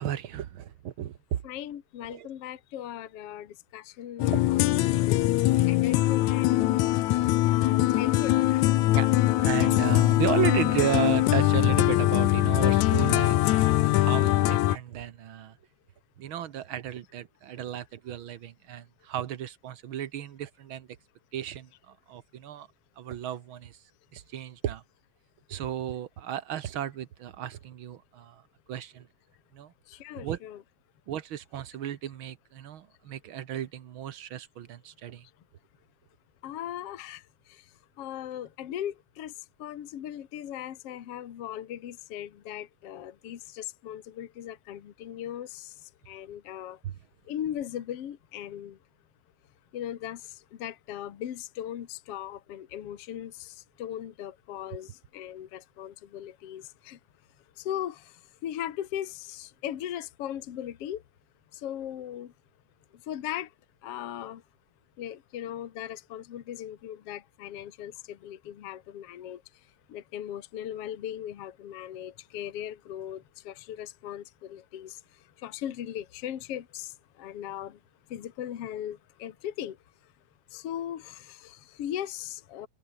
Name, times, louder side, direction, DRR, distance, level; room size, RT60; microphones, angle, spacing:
voice 1, 0.0-1.4 2.1-2.3 4.2-4.4 8.9-9.1 9.4-15.6 16.2-20.9 21.3-22.7 23.0-23.8 24.1-24.8 25.5-28.4 28.7-29.1 29.5-29.7 30.1-30.4 31.1-35.2 46.8-47.0, right 10 dB, 60° right, 1.5 m, -34 dB
voice 2, 1.4-4.6 4.9-5.4 5.7-6.7 7.4-8.7 29.9-30.6 36.4-46.8 47.3-48.8 49.7-57.0 57.6-61.0 61.5-62.3 62.9-63.5 63.8-64.4 65.0-69.4 69.9-77.8 78.1-79.8 80.0-80.1 80.5-82.7, left 11 dB, 60° left, 2.3 m, -38 dB
sound 1, 4.2-14.8, left 16 dB, 80° left, 2.1 m, -22 dB
omnidirectional pair, 3.3 m